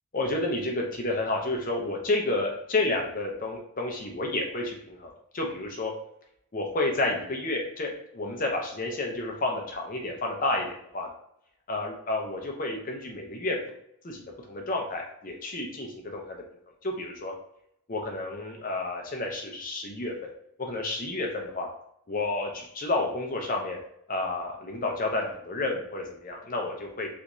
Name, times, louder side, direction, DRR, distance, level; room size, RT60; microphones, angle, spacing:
voice 1, 0.1-5.9 6.5-10.7 10.9-11.1 11.7-13.6 14.0-16.4 16.8-17.3 17.9-20.1 20.6-21.7 22.1-23.8 24.1-27.1, left 2 dB, 40° left, 1 dB, 0.6 m, -30 dB
3.3 x 2.6 x 3.0 m, 0.72 s
head